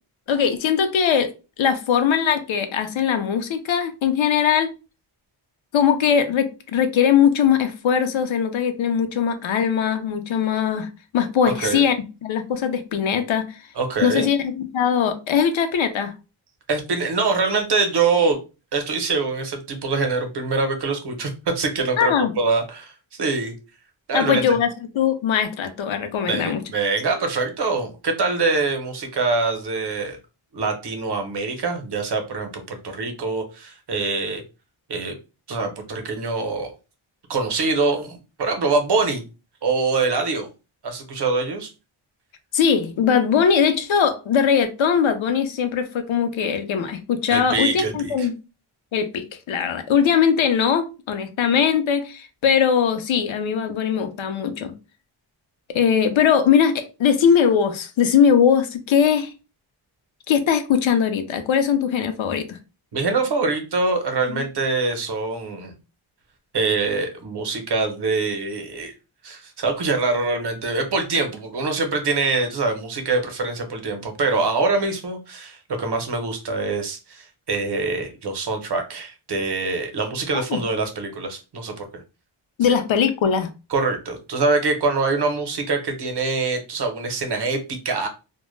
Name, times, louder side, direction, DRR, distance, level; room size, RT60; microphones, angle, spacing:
voice 1, 0.3-1.3 1.6-4.7 5.7-12.0 12.2-13.4 14.0-16.1 22.0-22.3 24.1-24.7 24.9-26.6 42.5-48.3 48.9-54.7 55.7-59.3 60.3-62.6 64.3-64.4 80.3-80.6 82.6-83.5, left 7 dB, 70° left, 0.5 m, -20 dB
voice 2, 13.8-14.3 16.7-18.4 18.7-22.9 23.2-23.5 24.1-24.4 26.3-30.2 30.5-34.4 34.9-35.2 35.5-36.7 37.3-39.2 39.6-40.5 40.8-41.7 47.3-48.3 62.9-65.7 66.5-68.9 69.2-82.0 83.7-88.1, right 3 dB, 55° right, 0.7 m, -24 dB
2.1 x 2.0 x 3.0 m
wide cardioid pair, 150°, 50 cm